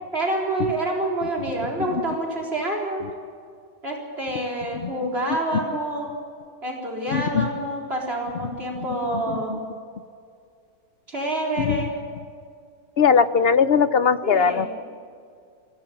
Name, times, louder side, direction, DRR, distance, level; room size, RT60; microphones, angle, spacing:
voice 1, 0.1-3.0 3.8-6.1 6.6-9.6 11.1-11.9 14.2-14.7, right 1 dB, 40° right, 1 dB, 4.3 m, -27 dB
voice 2, 7.1-7.5 8.8-8.9 9.3-9.6 11.6-11.8 13.0-14.7, left 6 dB, 55° left, 13 dB, 0.7 m, -20 dB
22.5 x 16.0 x 8.6 m, 2.2 s
omnidirectional pair, 1.6 m